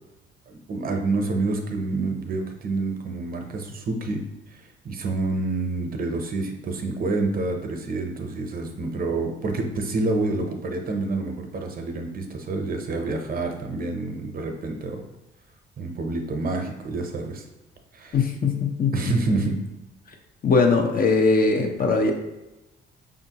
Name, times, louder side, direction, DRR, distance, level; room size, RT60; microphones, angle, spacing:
voice 1, 0.5-4.2 4.5-15.1 15.8-17.4 17.9-18.2 18.9-19.6, right 3 dB, 45° right, 4 dB, 0.7 m, -28 dB
voice 2, 18.1-18.9 20.4-22.1, left 4 dB, 45° left, 3 dB, 0.7 m, -20 dB
5.2 x 2.5 x 2.8 m, 0.98 s
cardioid pair, 90°, 20 cm